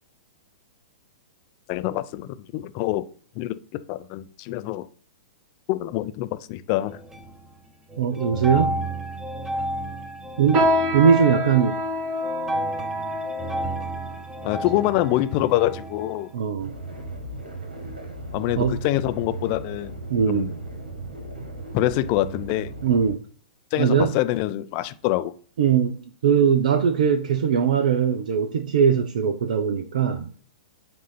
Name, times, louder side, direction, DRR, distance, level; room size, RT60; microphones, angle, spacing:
voice 1, 1.7-3.0 3.4-4.9 5.7-7.0 14.4-16.3 18.3-19.9 20.3-20.5 21.7-22.7 23.7-25.3, left 15 dB, 40° left, 0.5 m, -25 dB
sound 1, 6.8-7.6 7.9-16.3, right 1 dB, 10° right, 1.1 m, -32 dB
voice 2, 8.0-8.7 10.4-11.8 16.3-16.7 18.6-18.8 20.1-20.6 22.8-23.2 23.8-24.1 25.6-30.3, right 7 dB, 65° right, 0.6 m, -21 dB
sound 2, 10.5-16.2 16.9-17.0 17.7-18.0 18.4-18.6 19.3-19.4, equal, 35° right, 1.5 m, -28 dB
sound 3, 16.6-23.2, right 2 dB, 90° right, 1.5 m, -36 dB
7.5 x 2.7 x 5.7 m
hypercardioid pair, 115°, 5 cm